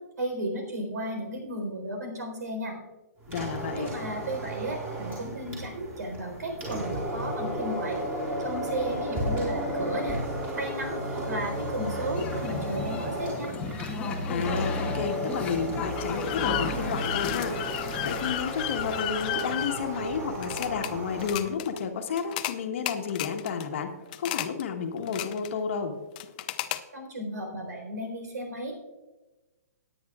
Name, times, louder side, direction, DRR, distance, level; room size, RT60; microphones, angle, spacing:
voice 1, 0.2-2.8 3.7-8.0 8.4-10.2 10.6-13.5 26.9-28.7, right 1 dB, 90° right, 3 dB, 4.0 m, -34 dB
sound 1, 3.2-21.5, equal, 15° right, 3.8 m, -33 dB
voice 2, 3.3-3.9 14.3-17.5 18.0-23.9 24.2-25.9, left 6 dB, 50° left, 5 dB, 1.4 m, -31 dB
sound 2, 12.1-18.3, left 5 dB, 15° left, 1.1 m, -35 dB
sound 3, 16.0-20.9 21.2-21.8 22.2-22.6 22.9-23.6 24.1-24.6 25.0-25.6 26.2-26.8, left 14 dB, 30° left, 0.5 m, -34 dB
18.5 x 9.3 x 2.4 m, 1.2 s
hypercardioid pair, 160°, 9 cm